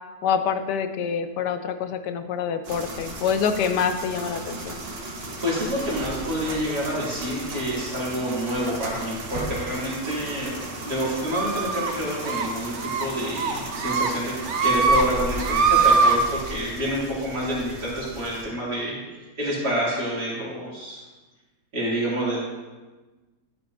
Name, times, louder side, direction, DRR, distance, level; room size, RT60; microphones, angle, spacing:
voice 1, 0.2-4.8, left 7 dB, 85° left, 9 dB, 1.2 m, -26 dB
sound 1, 2.6-18.4, right 1 dB, 40° right, 1.1 m, -35 dB
voice 2, 5.4-14.3 14.6-19.0 19.4-21.0 21.7-22.4, equal, 70° right, -7 dB, 3.4 m, -28 dB
sound 2, 11.3-11.9 12.3-12.5 12.8-13.0 13.4-14.1 14.4-15.0 15.3-16.1, right 5 dB, 55° right, 0.9 m, -21 dB
11.5 x 8.6 x 2.7 m, 1.2 s
omnidirectional pair, 1.8 m